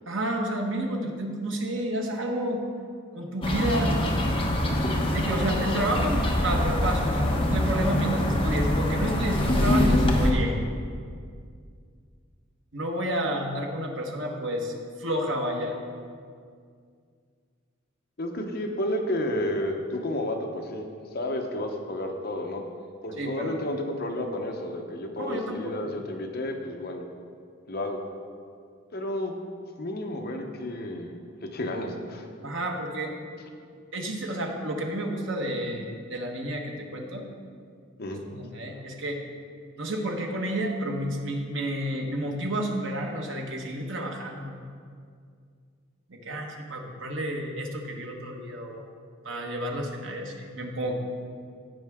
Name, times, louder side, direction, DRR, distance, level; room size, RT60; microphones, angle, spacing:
voice 1, 0.1-2.6 3.1-4.0 5.1-10.5 12.7-14.7 15.0-15.8 23.2-23.5 25.2-25.7 32.4-33.1 33.9-37.3 38.3-39.2 39.8-44.5 46.1-48.8 49.2-50.9, right 1 dB, 60° right, 1 dB, 1.2 m, -30 dB
sound 1, 3.4-10.3, left 1 dB, 25° left, 1.0 m, -24 dB
voice 2, 18.2-20.9 21.1-22.6 23.0-27.0 27.7-28.0 28.9-29.3 29.8-32.3 38.0-38.2, left 1 dB, 50° left, 3 dB, 0.9 m, -31 dB
17.0 x 5.7 x 3.6 m, 2.2 s
head